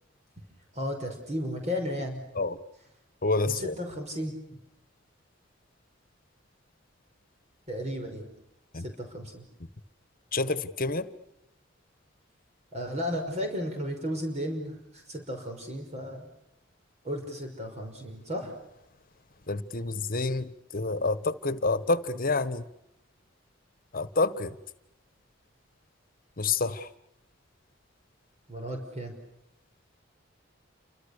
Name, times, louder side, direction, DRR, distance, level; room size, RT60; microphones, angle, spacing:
voice 1, 0.7-2.2 3.4-4.3 7.7-8.3 8.8-9.5 12.7-16.2 17.0-18.6 28.5-29.1, equal, 35° right, 3 dB, 5.6 m, -34 dB
voice 2, 3.2-3.7 8.7-8.8 10.3-11.1 19.5-22.6 23.9-24.5 26.4-26.9, left 3 dB, 50° left, 14 dB, 1.4 m, -28 dB
29.5 x 26.0 x 6.8 m, 0.85 s
head